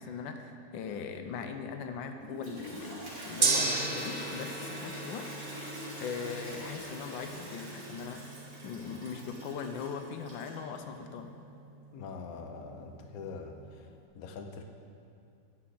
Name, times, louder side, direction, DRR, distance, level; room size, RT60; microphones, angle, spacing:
voice 1, 0.0-5.3 6.0-11.4, left 6 dB, 90° left, 6 dB, 1.4 m, -40 dB
Toilet flush, 2.2-10.8, equal, 35° right, 2.1 m, -44 dB
Gong, 3.4-13.6, right 3 dB, 70° right, 0.5 m, -37 dB
voice 2, 11.9-13.6 14.1-14.6, left 5 dB, 60° left, 4 dB, 1.1 m, -43 dB
9.9 x 4.7 x 7.7 m, 2.5 s
omnidirectional pair, 2.0 m